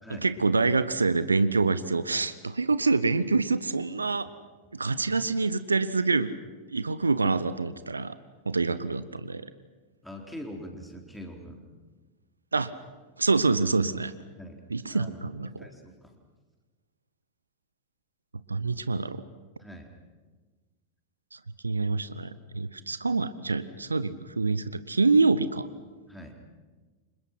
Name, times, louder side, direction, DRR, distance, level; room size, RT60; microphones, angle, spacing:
voice 1, 0.2-4.3 4.7-6.4 6.7-8.1 8.5-9.5 12.5-12.7 13.2-14.1 14.7-15.7 18.5-19.2 21.3-21.4 21.6-25.7, right 3 dB, 80° right, 14 dB, 0.9 m, -26 dB
voice 2, 10.0-11.6 14.4-14.6 14.9-15.2 15.6-16.1 19.6-19.9 26.1-26.3, equal, 5° left, 2 dB, 4.3 m, -43 dB
29.5 x 26.5 x 6.0 m, 1.3 s
figure-of-eight pair, 90°, 0 cm